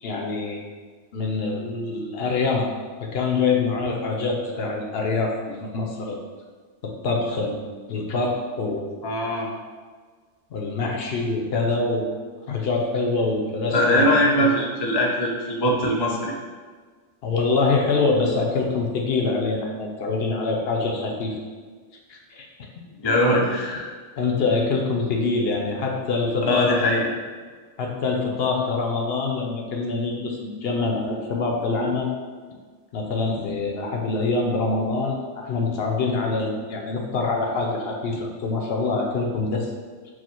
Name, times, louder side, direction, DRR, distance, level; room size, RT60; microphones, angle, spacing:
voice 1, 0.0-0.6 1.1-2.7 3.0-6.2 6.8-7.6 7.9-9.0 10.5-12.1 12.5-14.5 17.2-21.4 22.1-22.5 24.2-27.0 27.8-32.1 32.9-39.7, left 3 dB, 65° left, 0 dB, 0.7 m, -25 dB
voice 2, 9.0-9.5 13.7-16.3 23.0-23.9 26.4-27.1, left 1 dB, 40° left, -1 dB, 0.3 m, -21 dB
4.7 x 2.0 x 4.2 m, 1.5 s
omnidirectional pair, 1.2 m